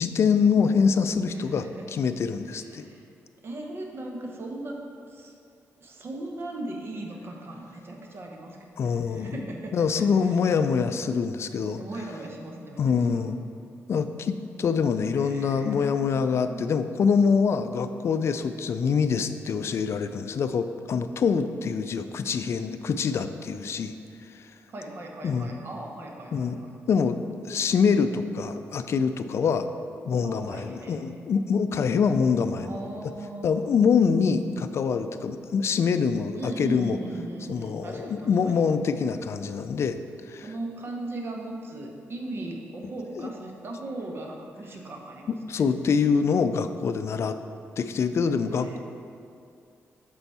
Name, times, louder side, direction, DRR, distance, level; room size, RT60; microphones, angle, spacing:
voice 1, 0.0-2.9 8.8-9.4 9.7-11.8 12.8-13.4 13.9-23.9 25.2-25.6 26.3-26.6 26.9-27.2 27.5-29.7 30.0-32.7 33.4-37.0 37.5-40.0 40.3-40.4 43.2-43.3 45.3-47.4 47.8-48.8, left 6 dB, 60° left, 10 dB, 0.4 m, -25 dB
voice 2, 1.3-1.9 2.5-3.0 3.4-4.8 5.1-5.3 5.8-10.4 11.8-13.3 15.1-16.6 24.7-26.7 30.2-31.1 32.5-33.5 36.4-38.6 40.4-45.6 48.5-48.8, right 2 dB, 50° right, 1 dB, 0.9 m, -38 dB
6.8 x 4.5 x 4.2 m, 2.4 s
cardioid pair, 80°, 5 cm